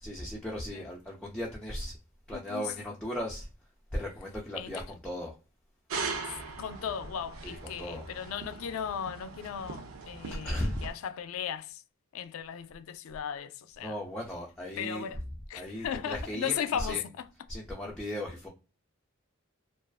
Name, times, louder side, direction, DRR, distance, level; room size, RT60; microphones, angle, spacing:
voice 1, 0.0-1.9 2.3-3.5 3.9-5.3 7.4-8.1 10.4-10.8 13.8-15.1 15.5-17.0 17.5-18.5, equal, 5° left, 0.4 m, -36 dB
voice 2, 2.3-2.7 4.6-4.8 6.6-11.8 12.1-14.0 14.8-15.2 15.5-17.3, left 8 dB, 90° left, 0.3 m, -36 dB
sound 1, 5.9-10.9, right 4 dB, 80° right, 0.5 m, -40 dB
2.4 x 2.3 x 2.3 m
head